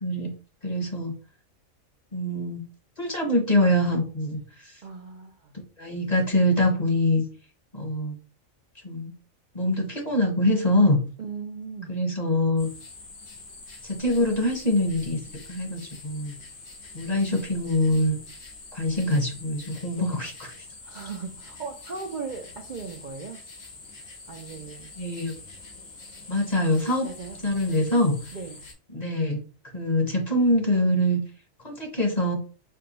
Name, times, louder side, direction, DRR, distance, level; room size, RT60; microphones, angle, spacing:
voice 1, 0.6-1.1 2.1-2.6 3.0-4.7 5.8-7.2 7.7-8.2 8.8-9.1 9.5-11.0 11.9-12.7 13.8-15.2 15.5-16.3 16.9-18.2 18.7-20.3 25.0-25.3 26.3-27.1 27.4-28.2 28.9-29.4 29.7-31.2 31.6-32.4, left 1 dB, 35° left, 3 dB, 0.9 m, -24 dB
voice 2, 4.8-5.5 11.2-12.0 19.9-20.1 20.9-23.4 24.3-24.9 27.0-27.4 28.3-28.6, right 5 dB, 50° right, 2 dB, 0.5 m, -37 dB
sound 1, 12.6-28.7, left 3 dB, 80° left, 1.8 m, -45 dB
4.8 x 2.2 x 3.9 m, 0.36 s
omnidirectional pair, 1.4 m